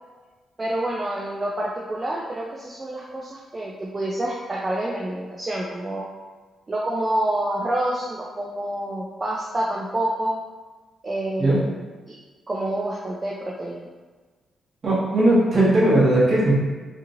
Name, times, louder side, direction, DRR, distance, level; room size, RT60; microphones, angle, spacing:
voice 1, 0.6-6.1 6.7-10.4 11.0-11.8 12.1-12.2 12.5-13.9, right 1 dB, 20° right, -4 dB, 0.3 m, -27 dB
voice 2, 14.8-16.5, right 1 dB, 40° right, -8 dB, 1.0 m, -18 dB
2.9 x 2.5 x 2.6 m, 1.3 s
wide cardioid pair, 160°, 0 cm